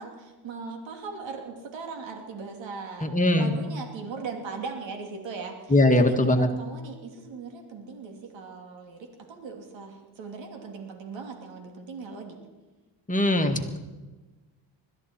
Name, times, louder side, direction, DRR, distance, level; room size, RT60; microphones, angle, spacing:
voice 1, 0.0-12.4, right 4 dB, 70° right, 3 dB, 3.0 m, -39 dB
voice 2, 3.0-3.5 5.7-6.5 13.1-13.8, left 1 dB, 15° left, 4 dB, 2.0 m, -21 dB
21.0 x 13.5 x 4.6 m, 1.2 s
cardioid pair, 85°, 46 cm